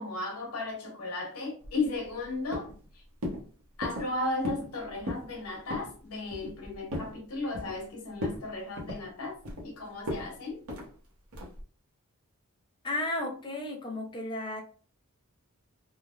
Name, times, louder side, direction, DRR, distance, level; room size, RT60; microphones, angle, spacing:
voice 1, 0.0-3.0 3.8-10.6, left 2 dB, 80° left, 1.0 m, -35 dB
sound 1, 1.6-2.2 2.5-2.9 3.2-3.4 3.8-4.1 4.4-4.7 5.0-5.3 5.7-5.9 6.3-7.1 7.5-7.9 8.2-8.4 8.8-9.7 10.1-10.3 10.7-10.9 11.3-11.6, left 1 dB, 70° right, 0.9 m, -36 dB
voice 2, 12.8-14.6, left 1 dB, 20° left, 0.6 m, -33 dB
3.2 x 2.1 x 2.4 m
head